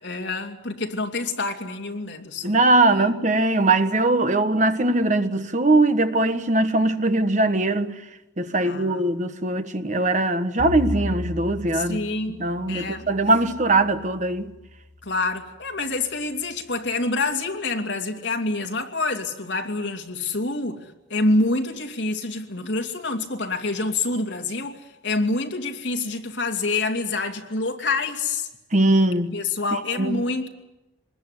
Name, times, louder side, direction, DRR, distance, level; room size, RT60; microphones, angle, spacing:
voice 1, 0.0-2.7 2.9-3.0 8.6-9.1 11.7-13.1 15.0-28.5 29.3-30.5, left 3 dB, 70° left, 2.8 m, -27 dB
voice 2, 2.4-7.9 8.4-12.0 12.4-14.5 28.7-29.4 30.0-30.2, right 2 dB, 40° right, 1.4 m, -21 dB
Bowed string instrument, 10.6-15.0, left 2 dB, 55° left, 2.2 m, -35 dB
25.5 x 21.0 x 9.9 m
head